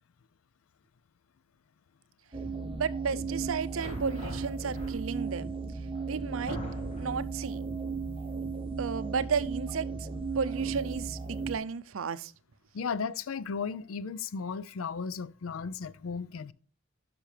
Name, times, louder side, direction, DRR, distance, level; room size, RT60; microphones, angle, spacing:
sound 1, 2.3-11.6, right 4 dB, 25° right, 0.9 m, -35 dB
voice 1, 2.7-5.5 6.1-6.6 7.0-7.6 8.8-10.1 10.3-12.3, right 5 dB, 80° right, 0.5 m, -33 dB
sound 2, 3.8-5.3 5.9-6.0 6.5-7.3, equal, 35° left, 1.8 m, -40 dB
voice 2, 12.7-16.5, left 5 dB, 90° left, 0.5 m, -35 dB
10.0 x 6.0 x 3.3 m
head